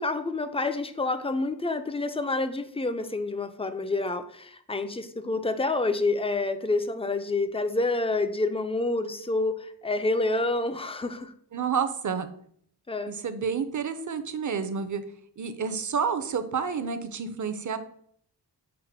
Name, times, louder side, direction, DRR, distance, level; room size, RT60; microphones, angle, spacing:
voice 1, 0.0-11.3 12.9-13.1, left 2 dB, 15° left, 0.3 m, -28 dB
voice 2, 11.5-12.3 13.1-15.0 15.4-17.8, right 6 dB, 45° right, 0.5 m, -29 dB
4.8 x 2.1 x 4.7 m
wide cardioid pair, 60°, 42 cm